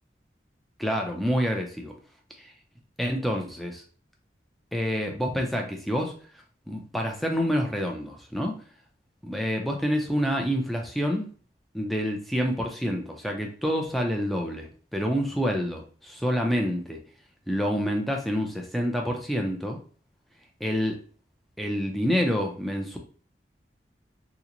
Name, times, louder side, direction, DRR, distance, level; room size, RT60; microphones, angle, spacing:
voice 1, 0.8-1.9 2.4-2.5 3.0-3.8 4.7-6.1 6.7-8.5 9.2-11.3 11.7-14.7 14.9-17.0 17.5-19.8 20.6-21.0 21.6-23.0, equal, ahead, 1 dB, 0.4 m, -27 dB
2.9 x 2.1 x 3.7 m, 0.41 s
head